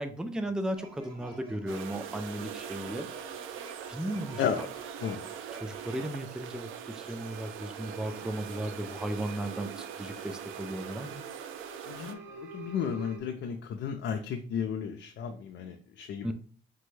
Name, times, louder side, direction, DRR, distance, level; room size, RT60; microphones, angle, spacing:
voice 1, 0.0-3.1 3.9-4.7 5.5-6.7 7.0-11.2 16.2-16.3, right 1 dB, 5° right, 8 dB, 0.4 m, -35 dB
sound 1, 0.7-6.1, right 2 dB, 25° right, 2.0 m, -50 dB
sound 2, 1.7-12.2, right 8 dB, 90° right, 0.4 m, -42 dB
voice 2, 4.4-5.2 11.9-16.3, left 7 dB, 70° left, 4 dB, 0.5 m, -34 dB
sound 3, 6.4-13.2, right 3 dB, 70° right, 0.9 m, -49 dB
5.9 x 2.2 x 3.2 m, 0.42 s
cardioid pair, 90°, 20 cm